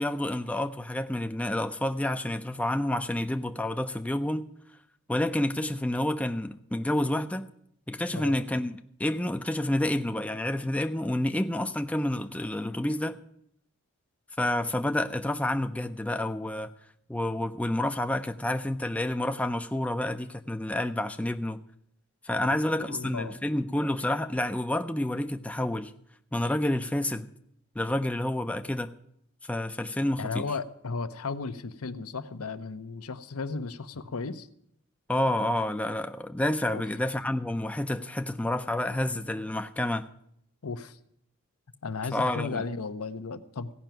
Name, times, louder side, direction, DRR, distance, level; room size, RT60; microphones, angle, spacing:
voice 1, 0.0-4.5 5.1-7.5 7.9-13.2 14.4-16.7 17.1-21.6 22.2-25.9 26.3-27.3 27.8-29.0 29.4-30.4 35.1-40.0 42.1-42.6, left 1 dB, 5° left, 0.4 m, -29 dB
voice 2, 22.8-23.3 30.2-34.5 36.7-36.8 40.6-41.0 41.8-43.7, left 4 dB, 85° left, 0.8 m, -35 dB
15.5 x 5.8 x 9.0 m
head